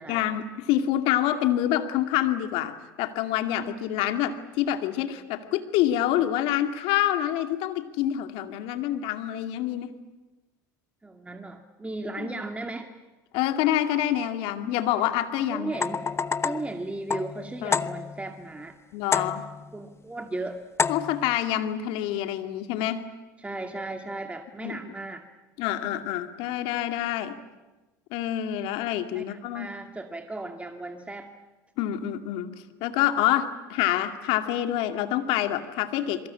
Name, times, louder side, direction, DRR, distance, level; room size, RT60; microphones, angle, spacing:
voice 1, 0.1-9.9 12.2-12.4 13.3-15.8 17.6-17.8 18.9-19.4 20.9-23.0 24.6-24.8 25.6-27.4 28.1-29.7 31.8-32.5 32.8-36.3, left 12 dB, 65° left, 7 dB, 2.3 m, -27 dB
voice 2, 11.0-12.9 15.5-16.1 16.4-18.8 19.1-19.3 19.7-20.7 23.4-25.3 29.1-31.3, right 2 dB, 10° right, 5 dB, 2.1 m, -36 dB
sound 1, 15.7-18.3 19.1-19.7 20.8-21.3, left 5 dB, 25° left, 0.9 m, -29 dB
27.0 x 23.5 x 8.6 m, 1.2 s
hypercardioid pair, 80°, 10 cm